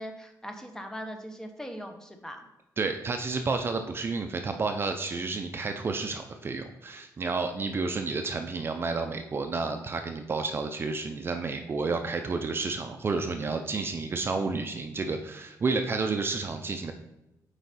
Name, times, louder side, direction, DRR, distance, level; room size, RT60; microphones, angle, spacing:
voice 1, 0.0-2.4, equal, 10° left, 5 dB, 0.9 m, -40 dB
voice 2, 2.8-16.9, right 4 dB, 35° right, 6 dB, 0.5 m, -31 dB
8.0 x 4.8 x 4.2 m, 0.92 s
cardioid pair, 125°, 7 cm